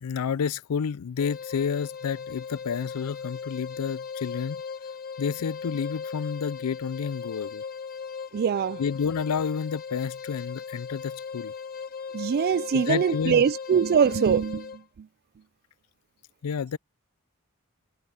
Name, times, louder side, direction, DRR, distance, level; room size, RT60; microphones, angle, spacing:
voice 1, 0.0-4.6 5.2-7.6 8.8-11.5 12.7-13.5 16.4-16.8, left 6 dB, 90° left, 0.4 m, -30 dB
sound 1, 1.2-14.8, left 6 dB, 40° left, 1.1 m, -38 dB
voice 2, 8.3-8.8 12.1-14.7, right 7 dB, 45° right, 0.3 m, -23 dB
head